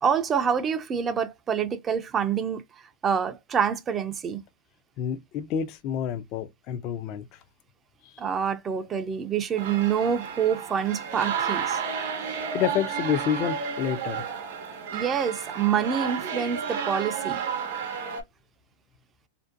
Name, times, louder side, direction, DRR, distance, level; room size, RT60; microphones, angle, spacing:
voice 1, 0.0-2.6 3.0-4.4 8.2-11.8 14.9-17.4, right 7 dB, 25° right, 0.4 m, -26 dB
voice 2, 5.0-7.3 12.2-14.2, left 9 dB, 40° left, 0.4 m, -29 dB
sound 1, 9.6-18.2, right 7 dB, 65° right, 0.7 m, -32 dB
2.5 x 2.1 x 2.5 m
hypercardioid pair, 130°, 0 cm